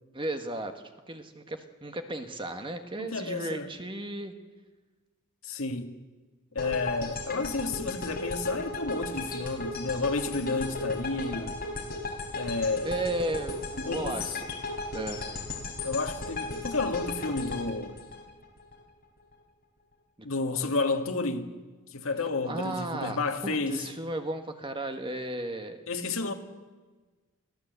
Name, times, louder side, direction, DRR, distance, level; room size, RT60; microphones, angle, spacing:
voice 1, 0.1-0.7 1.1-4.3 12.8-14.5 14.9-15.3 20.5-20.6 22.5-25.8, right 1 dB, 20° right, 1.4 m, -34 dB
voice 2, 3.0-3.7 5.4-5.9 6.6-11.6 12.4-12.9 13.9-14.2 15.8-18.0 20.2-21.5 21.9-23.9 25.9-26.3, left 3 dB, 65° left, 1.8 m, -31 dB
sound 1, 6.6-18.8, left 2 dB, 40° left, 4.2 m, -36 dB
23.5 x 15.0 x 8.1 m
head